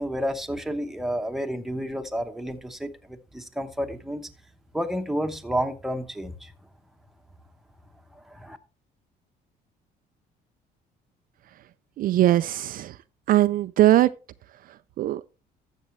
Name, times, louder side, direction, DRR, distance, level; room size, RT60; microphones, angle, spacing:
voice 1, 0.0-4.3 4.7-6.5 8.3-8.6, equal, ahead, 1.0 m, -30 dB
voice 2, 12.0-13.0 13.3-14.1 14.7-15.2, right 14 dB, 55° right, 0.4 m, -21 dB
13.0 x 7.3 x 3.2 m
cardioid pair, 110°, 17 cm